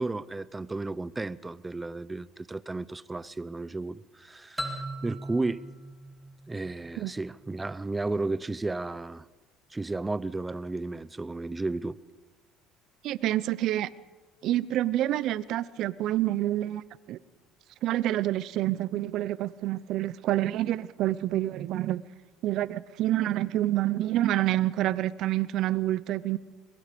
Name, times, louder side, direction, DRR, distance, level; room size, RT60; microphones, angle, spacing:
voice 1, 0.0-5.6 6.5-9.3 9.7-12.0, right 3 dB, 15° right, 0.6 m, -33 dB
sound 1, 4.6-7.3, right 1 dB, 5° left, 2.8 m, -39 dB
voice 2, 13.0-13.9 14.4-16.8 17.1-17.2 17.8-22.0 22.4-26.4, right 14 dB, 60° right, 0.7 m, -27 dB
23.0 x 22.0 x 5.2 m
cardioid pair, 120°, 0 cm